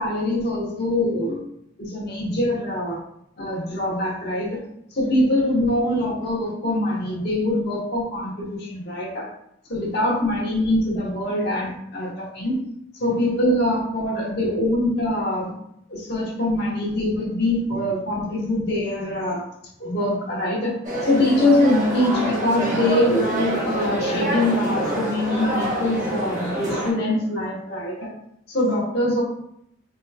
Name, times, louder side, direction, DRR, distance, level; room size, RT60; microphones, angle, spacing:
voice 1, 0.0-1.4 1.8-3.0 3.4-4.6 4.9-9.2 9.7-12.6 13.0-15.5 15.9-19.4 19.8-20.8 21.0-28.1 28.5-29.2, left 1 dB, 55° left, -4 dB, 1.2 m, -23 dB
sound 1, 20.8-26.9, right 1 dB, 40° right, 1.1 m, -26 dB
4.4 x 3.1 x 2.3 m, 0.74 s
head